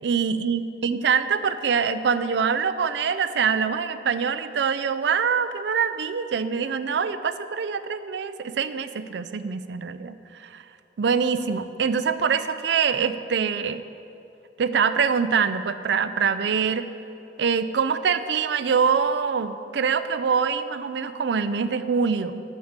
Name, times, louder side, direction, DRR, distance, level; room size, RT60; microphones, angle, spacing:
voice 1, 0.0-10.2 10.5-10.6 11.0-13.8 14.6-16.9 17.4-22.4, right 6 dB, 75° right, 11 dB, 0.4 m, -24 dB
9.1 x 6.5 x 7.3 m, 2.8 s
head